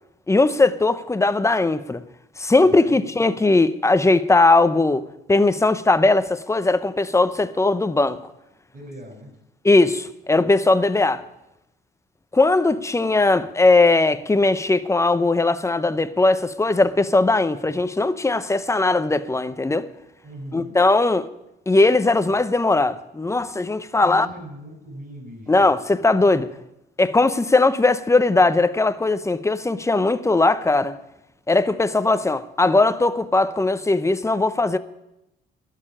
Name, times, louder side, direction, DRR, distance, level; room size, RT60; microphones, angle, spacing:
voice 1, 0.3-2.0 2.4-8.2 9.6-11.2 12.3-19.9 20.5-21.3 21.7-24.3 25.5-26.5 27.0-31.0 31.5-34.8, left 2 dB, 15° left, 0.7 m, -19 dB
voice 2, 2.6-3.3 8.7-9.3 20.2-20.7 24.0-25.7, right 1 dB, 45° right, 5.4 m, -40 dB
12.5 x 6.7 x 10.0 m
cardioid pair, 90°, 20 cm